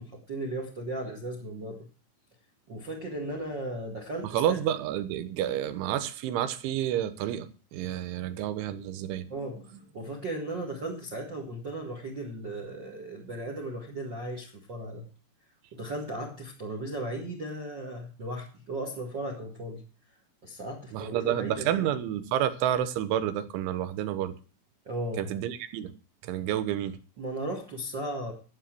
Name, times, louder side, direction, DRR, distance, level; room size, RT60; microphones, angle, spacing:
voice 1, 0.0-1.9 2.7-4.6 8.9-15.0 15.7-19.8 20.4-21.9 24.8-25.3 27.2-28.3, right 1 dB, 60° right, 1.1 m, -36 dB
voice 2, 4.2-9.3 20.9-24.3 25.2-25.9 26.2-27.0, right 11 dB, 85° right, 3.4 m, -29 dB
11.5 x 7.7 x 7.5 m
omnidirectional pair, 5.5 m